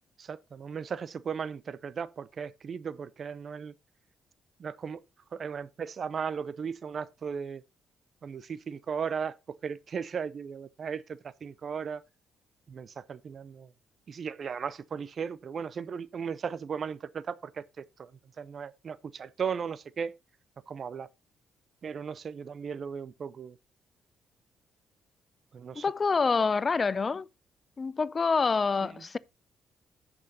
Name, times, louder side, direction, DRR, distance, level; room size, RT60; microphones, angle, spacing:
voice 1, 0.2-3.7 4.6-5.0 5.3-7.6 8.2-12.0 12.7-13.7 14.1-18.1 18.4-20.1 20.7-21.1 21.8-23.6 25.5-25.8 28.8-28.9, right 6 dB, 50° right, 0.6 m, -36 dB
voice 2, 25.8-27.3 27.8-29.2, left 4 dB, 35° left, 0.4 m, -27 dB
16.0 x 6.1 x 2.8 m
cardioid pair, 90°, 0 cm